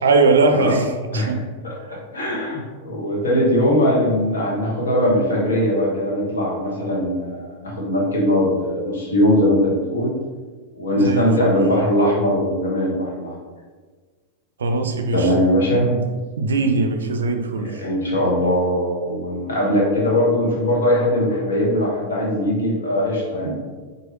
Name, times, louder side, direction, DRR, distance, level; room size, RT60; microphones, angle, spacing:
voice 1, 0.0-1.5 1.9-2.0 10.9-11.5 14.6-15.3 15.9-16.0 16.4-17.8 23.4-23.7, right 3 dB, 65° right, 6 dB, 0.4 m, -20 dB
voice 2, 1.6-10.1 10.7-13.3 15.1-15.9 17.8-23.5, equal, 65° left, -3 dB, 1.2 m, -20 dB
4.6 x 2.6 x 3.0 m, 1.4 s
figure-of-eight pair, 90°, 0 cm